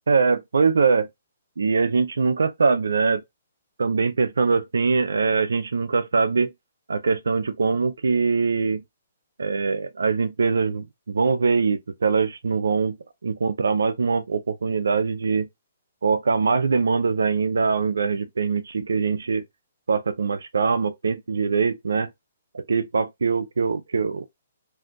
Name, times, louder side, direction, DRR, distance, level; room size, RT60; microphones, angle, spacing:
voice 1, 0.1-1.1 1.6-3.2 3.8-6.5 6.9-8.8 9.4-13.0 13.2-15.5 16.0-19.4 19.9-22.1 22.5-24.2, right 4 dB, 80° right, 0.5 m, -22 dB
2.6 x 2.4 x 3.6 m
hypercardioid pair, 140°, 0 cm